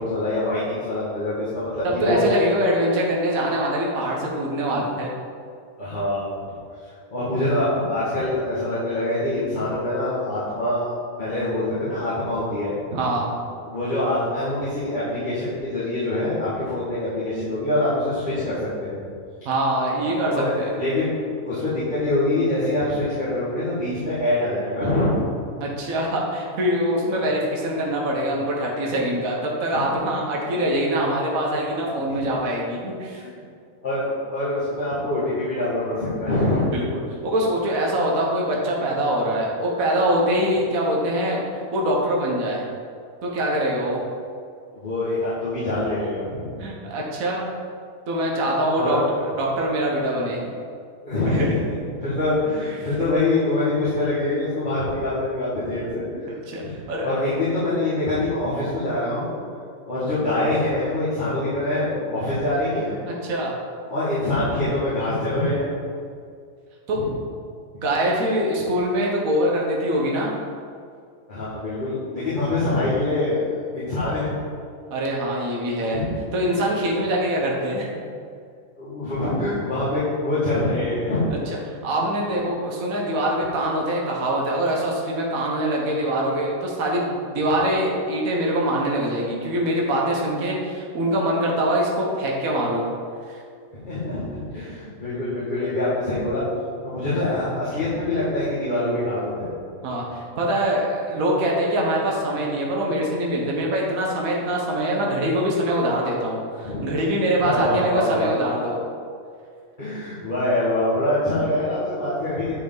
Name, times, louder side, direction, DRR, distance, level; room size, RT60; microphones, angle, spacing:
voice 1, 0.0-2.2 5.8-6.5 6.8-10.9 11.2-12.7 13.6-19.0 20.0-25.1 29.7-29.8 30.4-30.5 32.1-32.2 33.1-33.3 33.8-36.6 44.7-46.6 48.7-49.0 51.0-51.7 52.0-56.3 56.6-59.3 59.8-63.0 63.9-65.7 67.0-67.1 67.7-67.8 71.3-74.3 75.9-76.1 76.4-76.7 78.8-81.2 83.1-83.2 93.7-96.4 96.8-99.6 106.6-106.9 107.4-108.3 109.8-112.6, left 2 dB, 35° left, -13 dB, 2.0 m, -25 dB
voice 2, 2.0-5.1 12.9-13.3 19.4-20.3 20.6-20.7 25.6-33.2 36.7-36.8 37.2-41.4 41.7-42.7 43.2-44.1 46.6-47.5 48.1-49.0 49.3-50.5 51.2-51.5 56.5-56.6 56.9-57.1 63.1-63.5 66.9-67.1 67.8-70.3 74.9-76.0 76.3-78.0 81.8-92.8 93.3-93.4 99.8-108.8, right 1 dB, 70° right, -2 dB, 1.5 m, -23 dB
9.6 x 4.8 x 3.9 m, 2.2 s
omnidirectional pair, 1.5 m